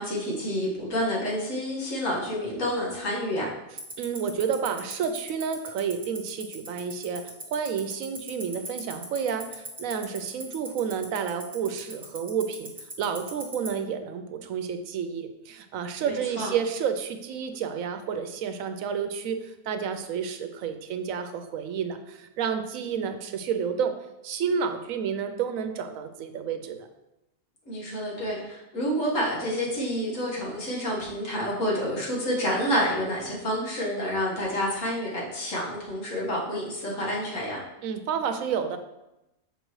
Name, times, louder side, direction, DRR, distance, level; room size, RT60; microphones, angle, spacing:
voice 1, 0.0-3.5 16.0-16.5 27.7-37.6, equal, 65° left, -4 dB, 1.9 m, -29 dB
Tick-tock, 3.8-13.7, right 3 dB, 30° right, 1.2 m, -37 dB
voice 2, 4.0-24.0 24.2-26.9 37.8-38.8, right 7 dB, 75° right, 7 dB, 1.0 m, -30 dB
6.5 x 4.7 x 3.1 m, 0.91 s
omnidirectional pair, 1.5 m